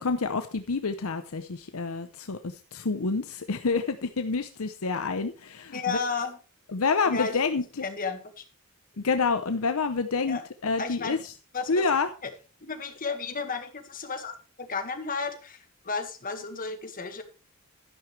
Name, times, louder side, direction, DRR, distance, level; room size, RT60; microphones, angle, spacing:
voice 1, 0.0-6.0 6.7-7.6 9.0-11.2 11.7-12.1, left 4 dB, 70° left, 9 dB, 0.8 m, -28 dB
voice 2, 5.7-6.4 7.1-7.4 7.8-8.4 10.3-10.4 10.8-11.2 11.5-11.9 12.6-17.2, left 4 dB, 40° left, 6 dB, 1.8 m, -33 dB
12.0 x 11.0 x 3.3 m, 0.34 s
head